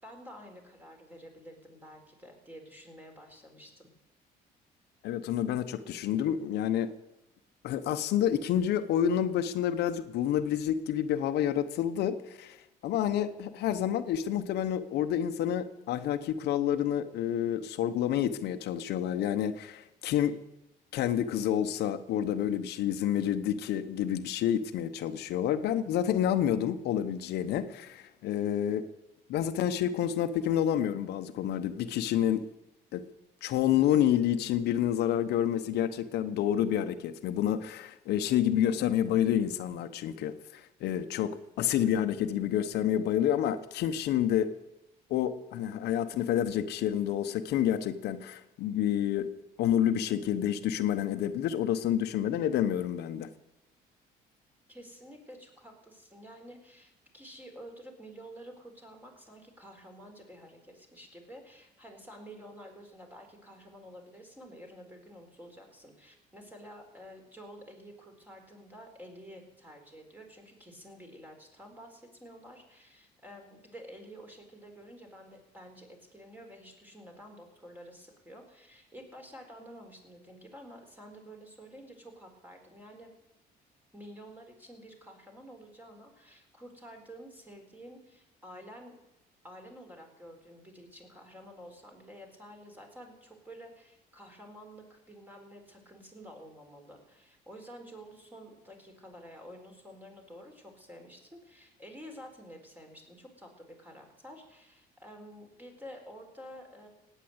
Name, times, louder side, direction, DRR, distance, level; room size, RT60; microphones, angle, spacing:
voice 1, 0.0-3.9 54.7-83.1 83.9-88.9 89.4-106.9, equal, 10° right, 2 dB, 4.1 m, -50 dB
voice 2, 5.0-6.9 7.6-20.4 20.9-28.9 29.3-32.5 32.9-33.0 33.4-44.5 45.1-49.3 49.6-53.3, left 10 dB, 75° left, 9 dB, 0.9 m, -29 dB
17.5 x 9.2 x 8.0 m, 0.92 s
cardioid pair, 110°, 17 cm